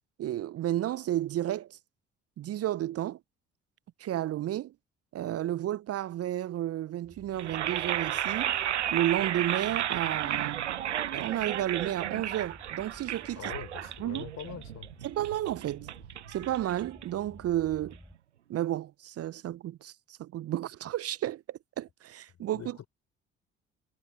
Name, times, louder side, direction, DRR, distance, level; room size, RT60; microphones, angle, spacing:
voice 1, 0.2-1.8 2.4-3.2 4.0-4.7 5.1-8.6 8.9-10.6 11.1-13.4 14.0-14.2 15.0-15.9 16.3-18.0 18.5-22.8, right 13 dB, 45° right, 0.8 m, -32 dB
sound 1, 7.0-18.1, equal, 5° left, 6.8 m, -54 dB
sound 2, 7.3-17.4, right 11 dB, 85° right, 0.9 m, -33 dB
voice 2, 13.3-14.9 22.5-22.9, left 10 dB, 50° left, 5.0 m, -43 dB
figure-of-eight pair, 50°, 34 cm